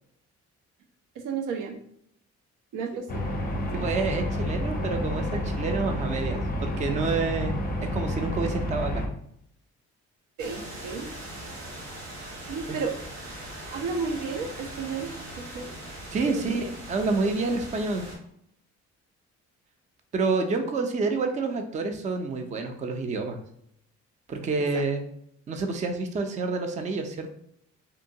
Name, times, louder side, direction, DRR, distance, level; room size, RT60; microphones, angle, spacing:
voice 1, 1.2-1.8 2.7-3.3 3.5-3.8 5.3-5.4 10.4-11.1 12.5-12.9 13.7-15.7 16.2-16.5 24.7-24.8, right 5 dB, 85° right, 4 dB, 0.5 m, -33 dB
sound 1, 3.1-9.1, left 1 dB, 30° left, 0.5 m, -29 dB
voice 2, 3.7-9.0 12.7-12.8 16.1-18.1 20.1-23.4 24.3-25.0 25.5-27.3, right 3 dB, 25° right, 5 dB, 0.4 m, -28 dB
sound 2, 10.4-18.2, right 1 dB, 65° right, 1.1 m, -40 dB
2.7 x 2.2 x 2.6 m, 0.72 s
cardioid pair, 90°, 30 cm